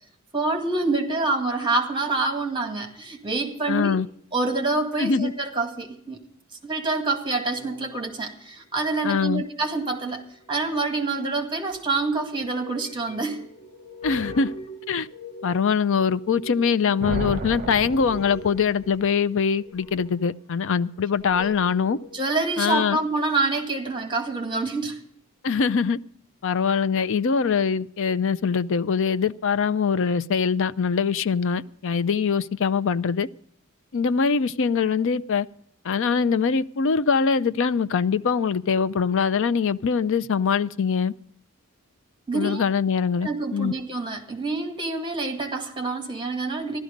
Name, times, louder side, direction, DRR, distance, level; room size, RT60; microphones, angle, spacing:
voice 1, 0.3-4.0 4.3-6.2 6.6-10.2 10.5-13.4 21.4-21.5 22.1-25.0 42.3-42.6 43.2-46.8, right 3 dB, 20° right, 4 dB, 2.0 m, -26 dB
voice 2, 3.7-4.1 5.0-5.3 9.0-9.4 14.0-14.5 14.9-15.1 15.4-22.0 22.6-23.0 25.4-26.0 26.4-33.3 33.9-35.5 35.8-41.1 42.3-43.7, left 6 dB, 60° left, 15 dB, 0.5 m, -23 dB
sound 1, 7.5-8.3 10.0-10.9 11.7-22.2, left 1 dB, 30° left, 2.5 m, -43 dB
sound 2, 17.0-19.0, right 2 dB, 40° right, 1.0 m, -32 dB
15.0 x 12.5 x 5.2 m, 0.64 s
head